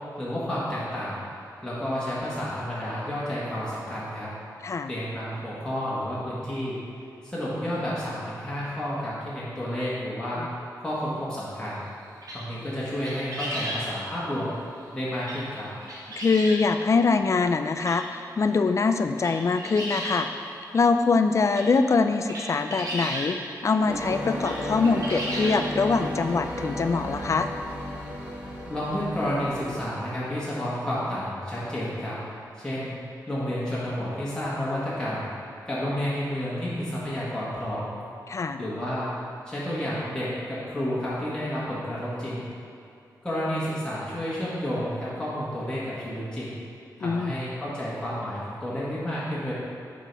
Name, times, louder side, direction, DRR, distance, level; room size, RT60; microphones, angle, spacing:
voice 1, 0.2-1.2 1.6-4.3 4.9-6.8 7.2-10.4 10.8-11.8 12.3-14.5 14.9-15.7 28.7-32.2 32.6-33.0 33.3-35.3 35.7-37.9 38.6-39.1 39.5-42.5 43.2-46.6 47.0-49.5, equal, 10° left, -9 dB, 1.7 m, -30 dB
sound 1, 12.2-12.6 13.0-13.9 15.2-15.5 15.8-16.6 17.4-17.5 17.8-18.0 18.5-18.6 19.0-20.5 21.0-21.1 21.4-23.3 24.3-24.6 24.8-25.8 26.5-26.6 26.9-27.0 28.3-28.4, equal, 60° right, 1.6 m, -34 dB
voice 2, 16.2-20.3 20.7-23.4 23.6-27.5 38.3-38.6 47.0-47.3, left 4 dB, 45° left, 8 dB, 0.4 m, -23 dB
sound 2, 23.9-29.8, equal, 20° right, 1.4 m, -33 dB
6.0 x 4.7 x 5.5 m, 2.6 s
cardioid pair, 75°, 7 cm